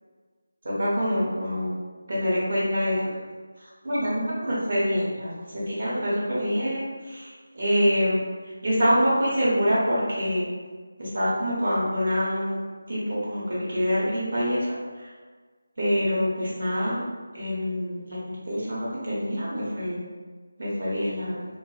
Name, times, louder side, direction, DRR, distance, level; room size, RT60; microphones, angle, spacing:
voice 1, 0.6-1.7 2.1-3.0 3.8-8.2 8.6-10.5 11.0-12.6 12.9-14.7 15.0-15.1 15.8-17.0 17.3-20.0 20.6-21.3, equal, 50° right, -7 dB, 1.0 m, -25 dB
2.5 x 2.3 x 2.4 m, 1.5 s
figure-of-eight pair, 170°, 0 cm